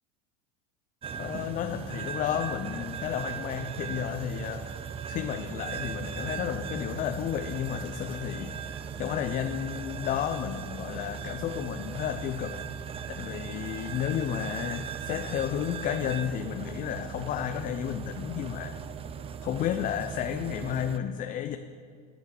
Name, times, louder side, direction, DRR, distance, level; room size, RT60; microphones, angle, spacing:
sound 1, 1.0-21.0, right 7 dB, 25° right, 0.6 m, -38 dB
voice 1, 1.2-4.7 5.1-8.7 9.0-12.6 13.1-18.8 19.4-21.6, left 10 dB, 40° left, 7 dB, 0.6 m, -32 dB
13.5 x 6.2 x 7.4 m, 2.1 s
hypercardioid pair, 95°, 21 cm